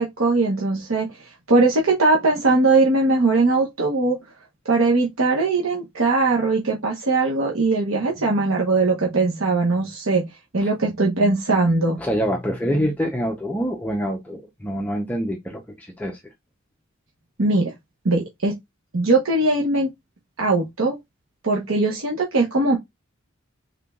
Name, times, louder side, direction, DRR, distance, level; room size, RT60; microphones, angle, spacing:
voice 1, 0.0-4.2 4.7-10.3 10.5-12.0 17.4-17.7 18.0-18.5 18.9-19.9 20.4-21.0 21.4-22.8, right 3 dB, 90° right, 1.0 m, -20 dB
voice 2, 12.0-16.2, equal, 5° left, 0.6 m, -25 dB
5.5 x 3.7 x 2.3 m
head